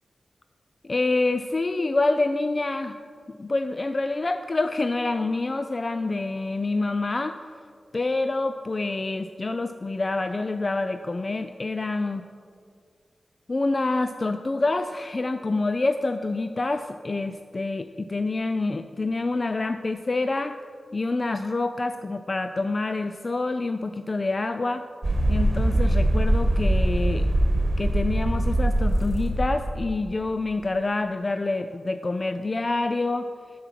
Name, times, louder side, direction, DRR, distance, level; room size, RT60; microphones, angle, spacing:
voice 1, 0.8-3.0 3.3-7.4 7.9-12.3 13.5-20.6 20.9-24.8 25.3-27.3 27.8-33.3, left 2 dB, 35° left, 9 dB, 0.3 m, -27 dB
sound 1, 25.0-29.8, right 1 dB, 25° right, 1.3 m, -22 dB
7.3 x 7.0 x 5.8 m, 2.1 s
wide cardioid pair, 85°, 0 cm